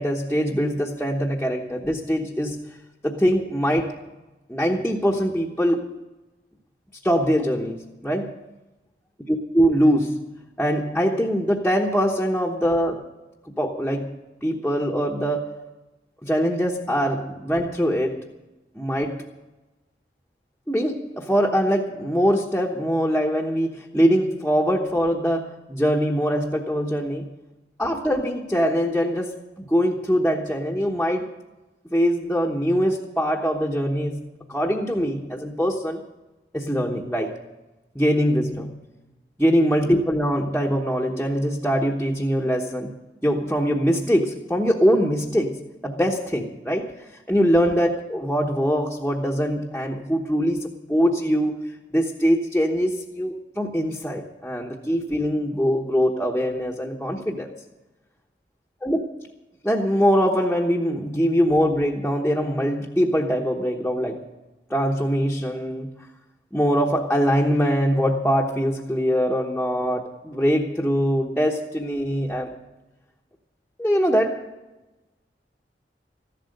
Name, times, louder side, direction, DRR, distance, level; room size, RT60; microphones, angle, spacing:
voice 1, 0.0-2.7 3.0-4.0 4.5-5.9 7.0-8.3 9.3-10.3 10.6-13.0 13.6-14.2 14.4-15.5 16.2-18.2 18.7-19.2 20.7-27.3 27.8-31.3 31.9-34.2 34.5-36.0 36.5-37.3 37.9-38.8 39.4-42.9 43.2-46.9 47.3-51.6 51.9-57.5 58.8-59.0 59.6-64.2 64.7-65.9 66.5-72.5 73.8-74.5, equal, 5° left, -2 dB, 1.0 m, -23 dB
14.5 x 11.5 x 6.5 m, 1.1 s
head